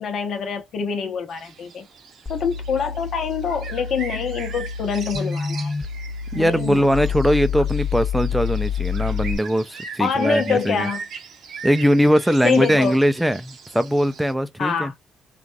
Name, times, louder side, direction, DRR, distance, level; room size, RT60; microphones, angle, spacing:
voice 1, 0.0-1.8 2.3-5.7 6.3-7.0 10.0-11.0 12.4-13.0 14.6-14.9, left 6 dB, 60° left, 1.0 m, -25 dB
sound 1, 1.3-14.3, right 5 dB, 70° right, 0.8 m, -39 dB
sound 2, 2.3-9.4, left 7 dB, 30° left, 0.7 m, -28 dB
voice 2, 6.3-10.9 11.6-14.9, equal, 5° right, 0.5 m, -20 dB
3.3 x 2.5 x 2.4 m
cardioid pair, 90°, 0 cm